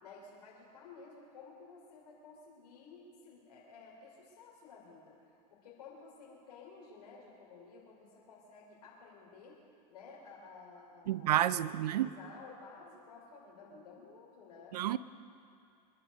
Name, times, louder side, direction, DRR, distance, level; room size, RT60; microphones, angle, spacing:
voice 1, 0.0-5.2 5.5-9.6 9.9-11.3 11.6-14.8, left 4 dB, 80° left, 3.4 m, -54 dB
voice 2, 11.1-12.1 14.7-15.0, right 12 dB, 90° right, 0.6 m, -30 dB
24.0 x 11.5 x 5.3 m
hypercardioid pair, 100°, 20 cm